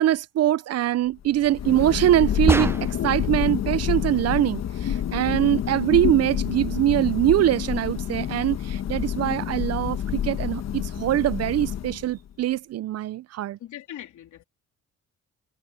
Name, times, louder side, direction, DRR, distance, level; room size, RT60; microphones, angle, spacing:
voice 1, 0.0-2.7 3.0-13.6, right 13 dB, 55° right, 0.5 m, -23 dB
Thunder, 1.3-12.3, left 9 dB, 60° left, 1.2 m, -28 dB
sound 1, 2.5-3.2, right 2 dB, 10° right, 0.6 m, -25 dB
voice 2, 13.6-14.4, left 11 dB, 75° left, 3.3 m, -40 dB
cardioid pair, 90°, 30 cm